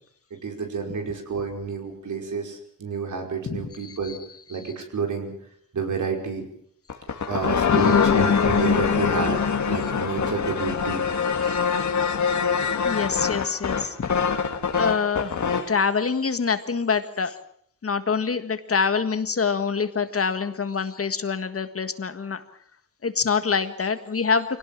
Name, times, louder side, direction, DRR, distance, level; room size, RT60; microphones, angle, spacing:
voice 1, 0.3-4.2 4.5-5.3 5.7-6.4 7.3-9.4 9.7-11.0, right 5 dB, 65° right, 3 dB, 5.2 m, -30 dB
voice 2, 3.8-4.2 7.7-7.8 11.4-11.6 12.8-14.0 14.3-15.4 15.7-17.3 17.8-22.4 23.0-24.6, left 5 dB, 45° left, 10 dB, 1.7 m, -25 dB
sound 1, 6.9-15.8, left 6 dB, 60° left, 2.1 m, -23 dB
24.5 x 18.0 x 7.4 m, 0.65 s
wide cardioid pair, 115°, 32 cm